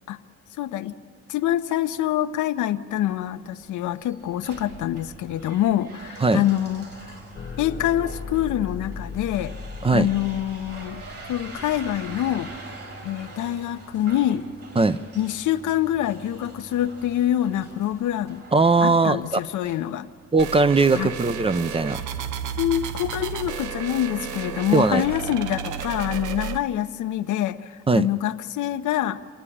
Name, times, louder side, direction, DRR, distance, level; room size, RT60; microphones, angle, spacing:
voice 1, 0.6-1.0 1.3-6.9 7.6-9.5 9.9-11.0 11.3-12.5 13.0-14.4 15.2-18.4 18.8-20.1 20.9-21.2 22.6-29.2, left 12 dB, 80° left, 11 dB, 0.8 m, -25 dB
sound 1, 3.1-20.6, right 2 dB, 50° right, 3.4 m, -44 dB
sound 2, 7.3-12.6, left 5 dB, 30° left, 1.0 m, -38 dB
voice 2, 18.5-19.4 20.3-22.0 24.7-25.0 27.9-28.1, right 3 dB, 20° right, 14 dB, 0.5 m, -19 dB
sound 3, 20.4-26.6, right 7 dB, 85° right, 0.8 m, -32 dB
27.5 x 9.8 x 9.9 m, 2.1 s
cardioid pair, 90°, 30 cm